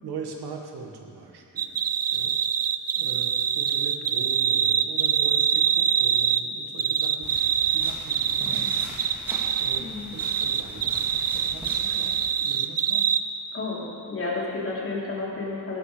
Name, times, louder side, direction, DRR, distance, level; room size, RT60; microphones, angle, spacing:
voice 1, 0.0-1.8 2.1-2.3 2.9-9.3 9.6-13.1, right 5 dB, 75° right, 2 dB, 1.8 m, -41 dB
sound 1, 1.6-6.4 6.8-9.8 10.2-13.2, right 8 dB, 40° right, 0.5 m, -24 dB
sound 2, 7.2-12.3, equal, 5° right, 3.1 m, -42 dB
voice 2, 9.8-10.1 13.5-15.8, left 3 dB, 35° left, -5 dB, 3.2 m, -31 dB
16.0 x 12.5 x 5.1 m, 2.7 s
cardioid pair, 135°, 38 cm